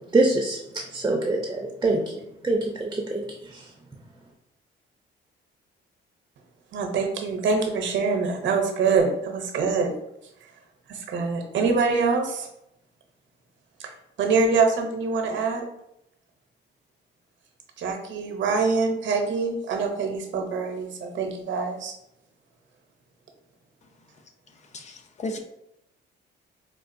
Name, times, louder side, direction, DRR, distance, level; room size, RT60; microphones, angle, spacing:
voice 1, 0.1-3.7, right 2 dB, 15° right, 0 dB, 0.6 m, -25 dB
voice 2, 6.7-9.9 10.9-12.5 13.8-13.9 14.2-15.7 17.8-21.9, right 4 dB, 70° right, 4 dB, 0.7 m, -24 dB
voice 3, 24.7-25.4, left 2 dB, 35° left, 5 dB, 0.6 m, -34 dB
4.5 x 2.4 x 2.6 m, 0.82 s
cardioid pair, 90°, 20 cm